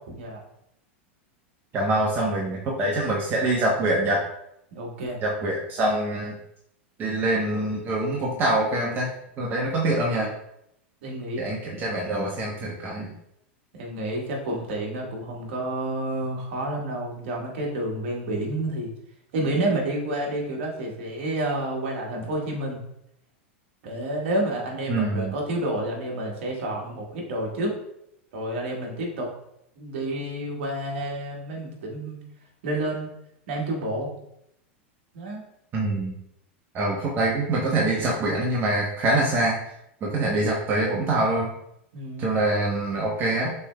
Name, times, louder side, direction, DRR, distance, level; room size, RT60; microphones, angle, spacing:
voice 1, 1.7-4.2 5.2-6.3 7.0-9.1 9.4-10.3 11.4-13.1 24.9-25.3 35.7-36.1 36.7-39.6 40.0-41.5 42.2-43.5, right 2 dB, 35° right, -3 dB, 1.0 m, -24 dB
voice 2, 4.7-5.2 11.0-11.4 13.7-18.9 19.3-22.8 23.8-27.7 28.3-29.3 29.7-32.2 32.6-33.1 33.5-34.1 35.1-35.4 41.9-42.3, right 1 dB, 65° right, -1 dB, 1.5 m, -29 dB
6.7 x 3.3 x 2.3 m, 0.77 s
hypercardioid pair, 105°, 7 cm